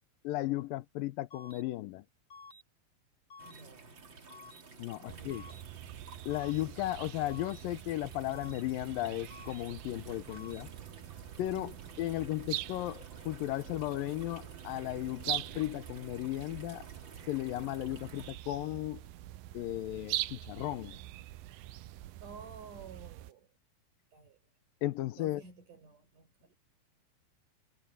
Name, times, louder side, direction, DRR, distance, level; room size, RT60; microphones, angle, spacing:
voice 1, 0.2-2.0 4.8-5.5 6.3-10.7 11.4-11.7 12.0-16.9 17.3-19.0 19.5-21.0 24.8-25.4, left 15 dB, 90° left, 2.6 m, -35 dB
sound 1, 1.3-1.6 2.3-2.6 3.3-3.6 4.3-4.6 5.3-5.6 6.3-6.6 7.3-7.6 8.3-8.6 9.3-9.6 10.3-10.6, left 3 dB, 35° left, 3.8 m, -51 dB
sound 2, 3.4-18.3, right 4 dB, 35° right, 3.2 m, -53 dB
voice 2, 3.5-3.9 5.0-5.6 11.5-11.9 22.2-23.5 24.1-24.4 25.2-26.6, right 4 dB, 65° right, 7.1 m, -52 dB
sound 3, 5.1-23.3, right 15 dB, 85° right, 2.6 m, -44 dB
omnidirectional pair, 4.0 m